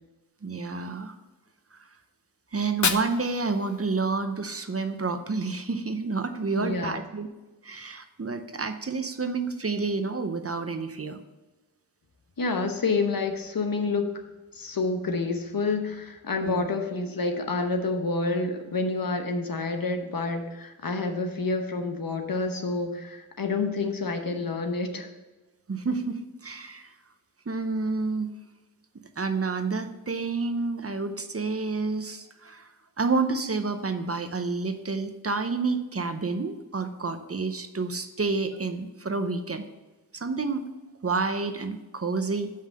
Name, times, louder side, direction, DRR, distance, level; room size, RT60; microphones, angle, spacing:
voice 1, 0.4-1.1 1.7-1.8 2.5-7.3 7.6-11.2 16.4-16.7 25.7-26.9 27.5-28.3 29.2-32.7 33.0-39.6 40.1-40.6 41.0-42.5, right 4 dB, 40° right, 8 dB, 0.7 m, -29 dB
Fire, 2.5-4.5, left 5 dB, 50° left, 0.6 m, -32 dB
voice 2, 6.5-7.0 12.4-14.1 14.5-25.1, left 3 dB, 70° left, 5 dB, 1.0 m, -28 dB
5.6 x 5.5 x 6.4 m, 1.1 s
wide cardioid pair, 65°, 36 cm